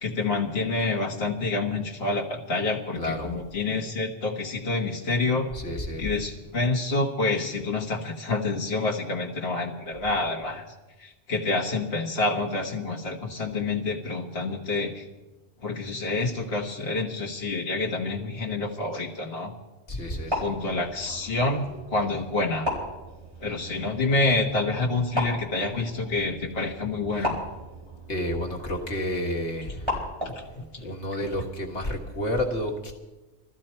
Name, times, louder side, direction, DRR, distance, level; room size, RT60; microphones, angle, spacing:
voice 1, 0.0-5.5 6.0-10.7 11.0-15.1 15.6-19.5 20.3-22.7 23.4-27.4 30.2-30.9, left 3 dB, 60° left, -1 dB, 1.8 m, -28 dB
voice 2, 3.0-3.3 5.5-6.1 19.9-20.3 28.1-29.9 30.8-32.9, left 1 dB, 80° left, 0 dB, 1.9 m, -30 dB
sound 1, 20.0-30.6, left 1 dB, 25° right, 4.4 m, -36 dB
20.5 x 14.0 x 4.4 m, 1.1 s
omnidirectional pair, 1.1 m